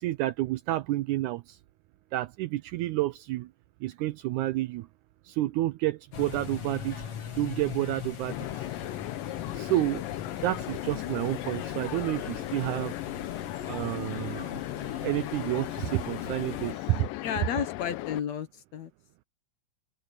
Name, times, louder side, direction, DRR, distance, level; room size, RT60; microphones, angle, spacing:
voice 1, 0.0-1.6 2.1-3.5 3.8-4.9 5.3-7.0 7.4-8.5 9.5-10.0 10.4-12.9 13.7-14.5 15.0-17.1, right 16 dB, 80° right, 1.8 m, -30 dB
sound 1, 6.1-16.7, left 7 dB, 45° left, 3.0 m, -40 dB
sound 2, 8.3-18.2, left 17 dB, 85° left, 2.4 m, -37 dB
voice 2, 17.2-18.9, left 8 dB, 65° left, 2.1 m, -32 dB
omnidirectional pair, 3.9 m